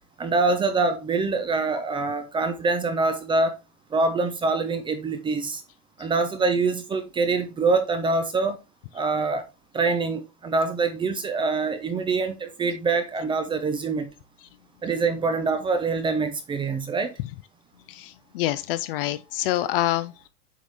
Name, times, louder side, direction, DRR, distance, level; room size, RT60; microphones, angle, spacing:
voice 1, 0.2-3.5 3.9-5.6 6.0-8.6 8.9-9.4 9.7-14.1 14.8-17.1, right 3 dB, 10° right, 0.6 m, -25 dB
voice 2, 17.9-20.3, left 15 dB, 40° left, 0.5 m, -27 dB
8.2 x 4.8 x 3.4 m
hypercardioid pair, 135°, 46 cm